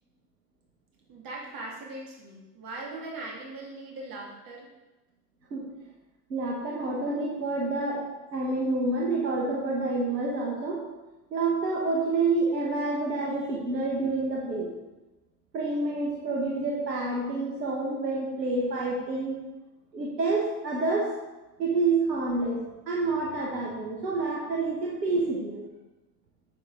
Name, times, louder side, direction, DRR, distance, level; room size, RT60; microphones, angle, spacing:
voice 1, 1.1-4.7 6.8-6.9 19.2-19.3, right 2 dB, 45° right, -2 dB, 2.7 m, -40 dB
voice 2, 6.3-8.0 8.3-10.9 11.3-14.7 15.5-19.4 19.9-21.1 21.6-22.6 22.9-25.7, right 3 dB, 80° right, -3 dB, 1.4 m, -28 dB
9.5 x 6.0 x 3.9 m, 1.1 s
figure-of-eight pair, 70°, 49 cm